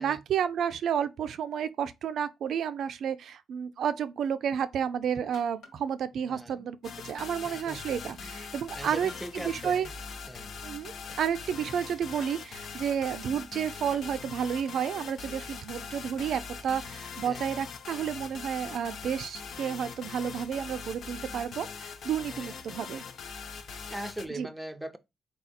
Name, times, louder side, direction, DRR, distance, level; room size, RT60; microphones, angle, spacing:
voice 1, 0.0-9.9 10.6-23.0 24.4-24.5, right 8 dB, 65° right, 0.4 m, -31 dB
sound 1, 5.3-5.9 7.2-8.2 9.1-10.8 11.1-12.7 13.9-14.3 14.8-15.5 16.0-17.3 17.6-19.0, left 3 dB, 85° left, 1.4 m, -54 dB
voice 2, 6.3-6.7 7.4-7.8 8.2-9.9 10.3-10.5 17.2-17.6 22.3-22.6 23.9-25.0, right 1 dB, 5° right, 0.5 m, -41 dB
sound 2, 6.8-24.3, left 5 dB, 60° left, 0.6 m, -42 dB
4.1 x 2.3 x 4.1 m
cardioid pair, 90°, 0 cm